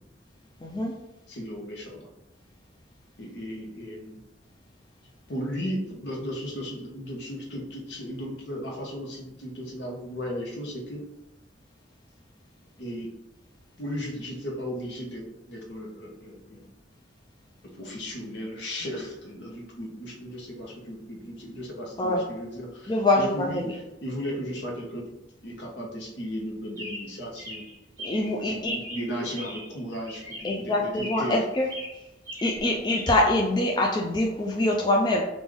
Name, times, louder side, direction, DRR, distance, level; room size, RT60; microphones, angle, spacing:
voice 1, 0.6-0.9 22.0-22.2 22.9-23.5 28.0-28.8 30.4-31.7 32.4-35.2, left 1 dB, 25° left, 0 dB, 0.3 m, -24 dB
voice 2, 1.3-2.1 3.2-4.2 5.3-11.0 12.8-13.1 13.8-16.7 17.7-25.1 25.4-27.6 28.5-31.5, equal, 65° left, 0 dB, 1.0 m, -35 dB
Chirp tweet, 26.8-28.4 28.8-29.8 30.0-30.6 30.9-31.4 31.6-33.1, equal, 20° right, 1.3 m, -40 dB
3.4 x 2.6 x 3.4 m, 0.93 s
head